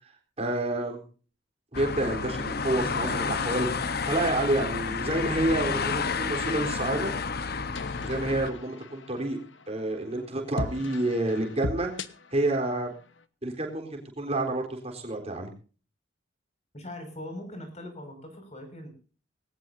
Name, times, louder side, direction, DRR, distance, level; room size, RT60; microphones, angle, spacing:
voice 1, 0.4-1.0 1.7-7.1 8.0-9.4 9.7-11.9 12.3-12.9 13.4-15.5, right 1 dB, 35° right, 2 dB, 3.8 m, -29 dB
sound 1, 1.7-8.5, left 5 dB, 55° left, 1.0 m, -30 dB
sound 2, 7.7-13.2, left 3 dB, 90° left, 1.1 m, -40 dB
voice 2, 16.7-18.9, left 1 dB, 35° left, 6 dB, 5.9 m, -41 dB
19.5 x 18.5 x 2.7 m, 0.38 s
head